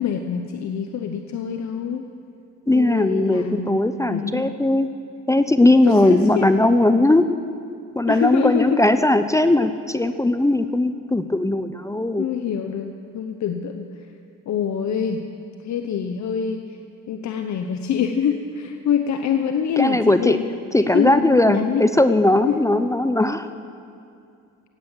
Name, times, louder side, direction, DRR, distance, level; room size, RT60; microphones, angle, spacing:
voice 1, 0.0-2.1 2.7-4.5 5.8-6.5 8.1-8.8 12.2-13.9 14.5-15.2 15.6-16.6 17.1-20.4 20.8-21.9 22.5-22.6, left 7 dB, 65° left, 5 dB, 0.9 m, -25 dB
voice 2, 2.7-4.9 5.3-7.2 8.0-12.3 19.8-20.4 20.7-23.5, left 1 dB, 10° left, 10 dB, 0.5 m, -18 dB
16.0 x 9.6 x 7.3 m, 2.5 s
cardioid pair, 90°, 30 cm